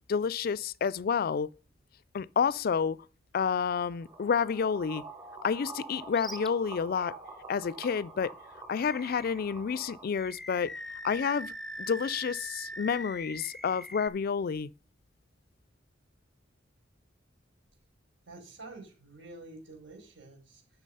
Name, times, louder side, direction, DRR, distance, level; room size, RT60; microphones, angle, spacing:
voice 1, 0.1-1.5 2.1-3.0 3.3-5.1 5.4-7.2 7.5-8.3 8.7-10.7 11.0-11.5 11.8-14.7, left 6 dB, 50° left, 0.4 m, -29 dB
sound 1, 4.0-10.0, right 3 dB, 20° right, 2.1 m, -46 dB
Animal, 6.1-6.5 7.0-7.1 8.7-9.5 10.1-14.1, equal, ahead, 0.6 m, -42 dB
voice 2, 18.2-20.8, right 2 dB, 85° right, 5.1 m, -49 dB
11.0 x 6.0 x 5.5 m
head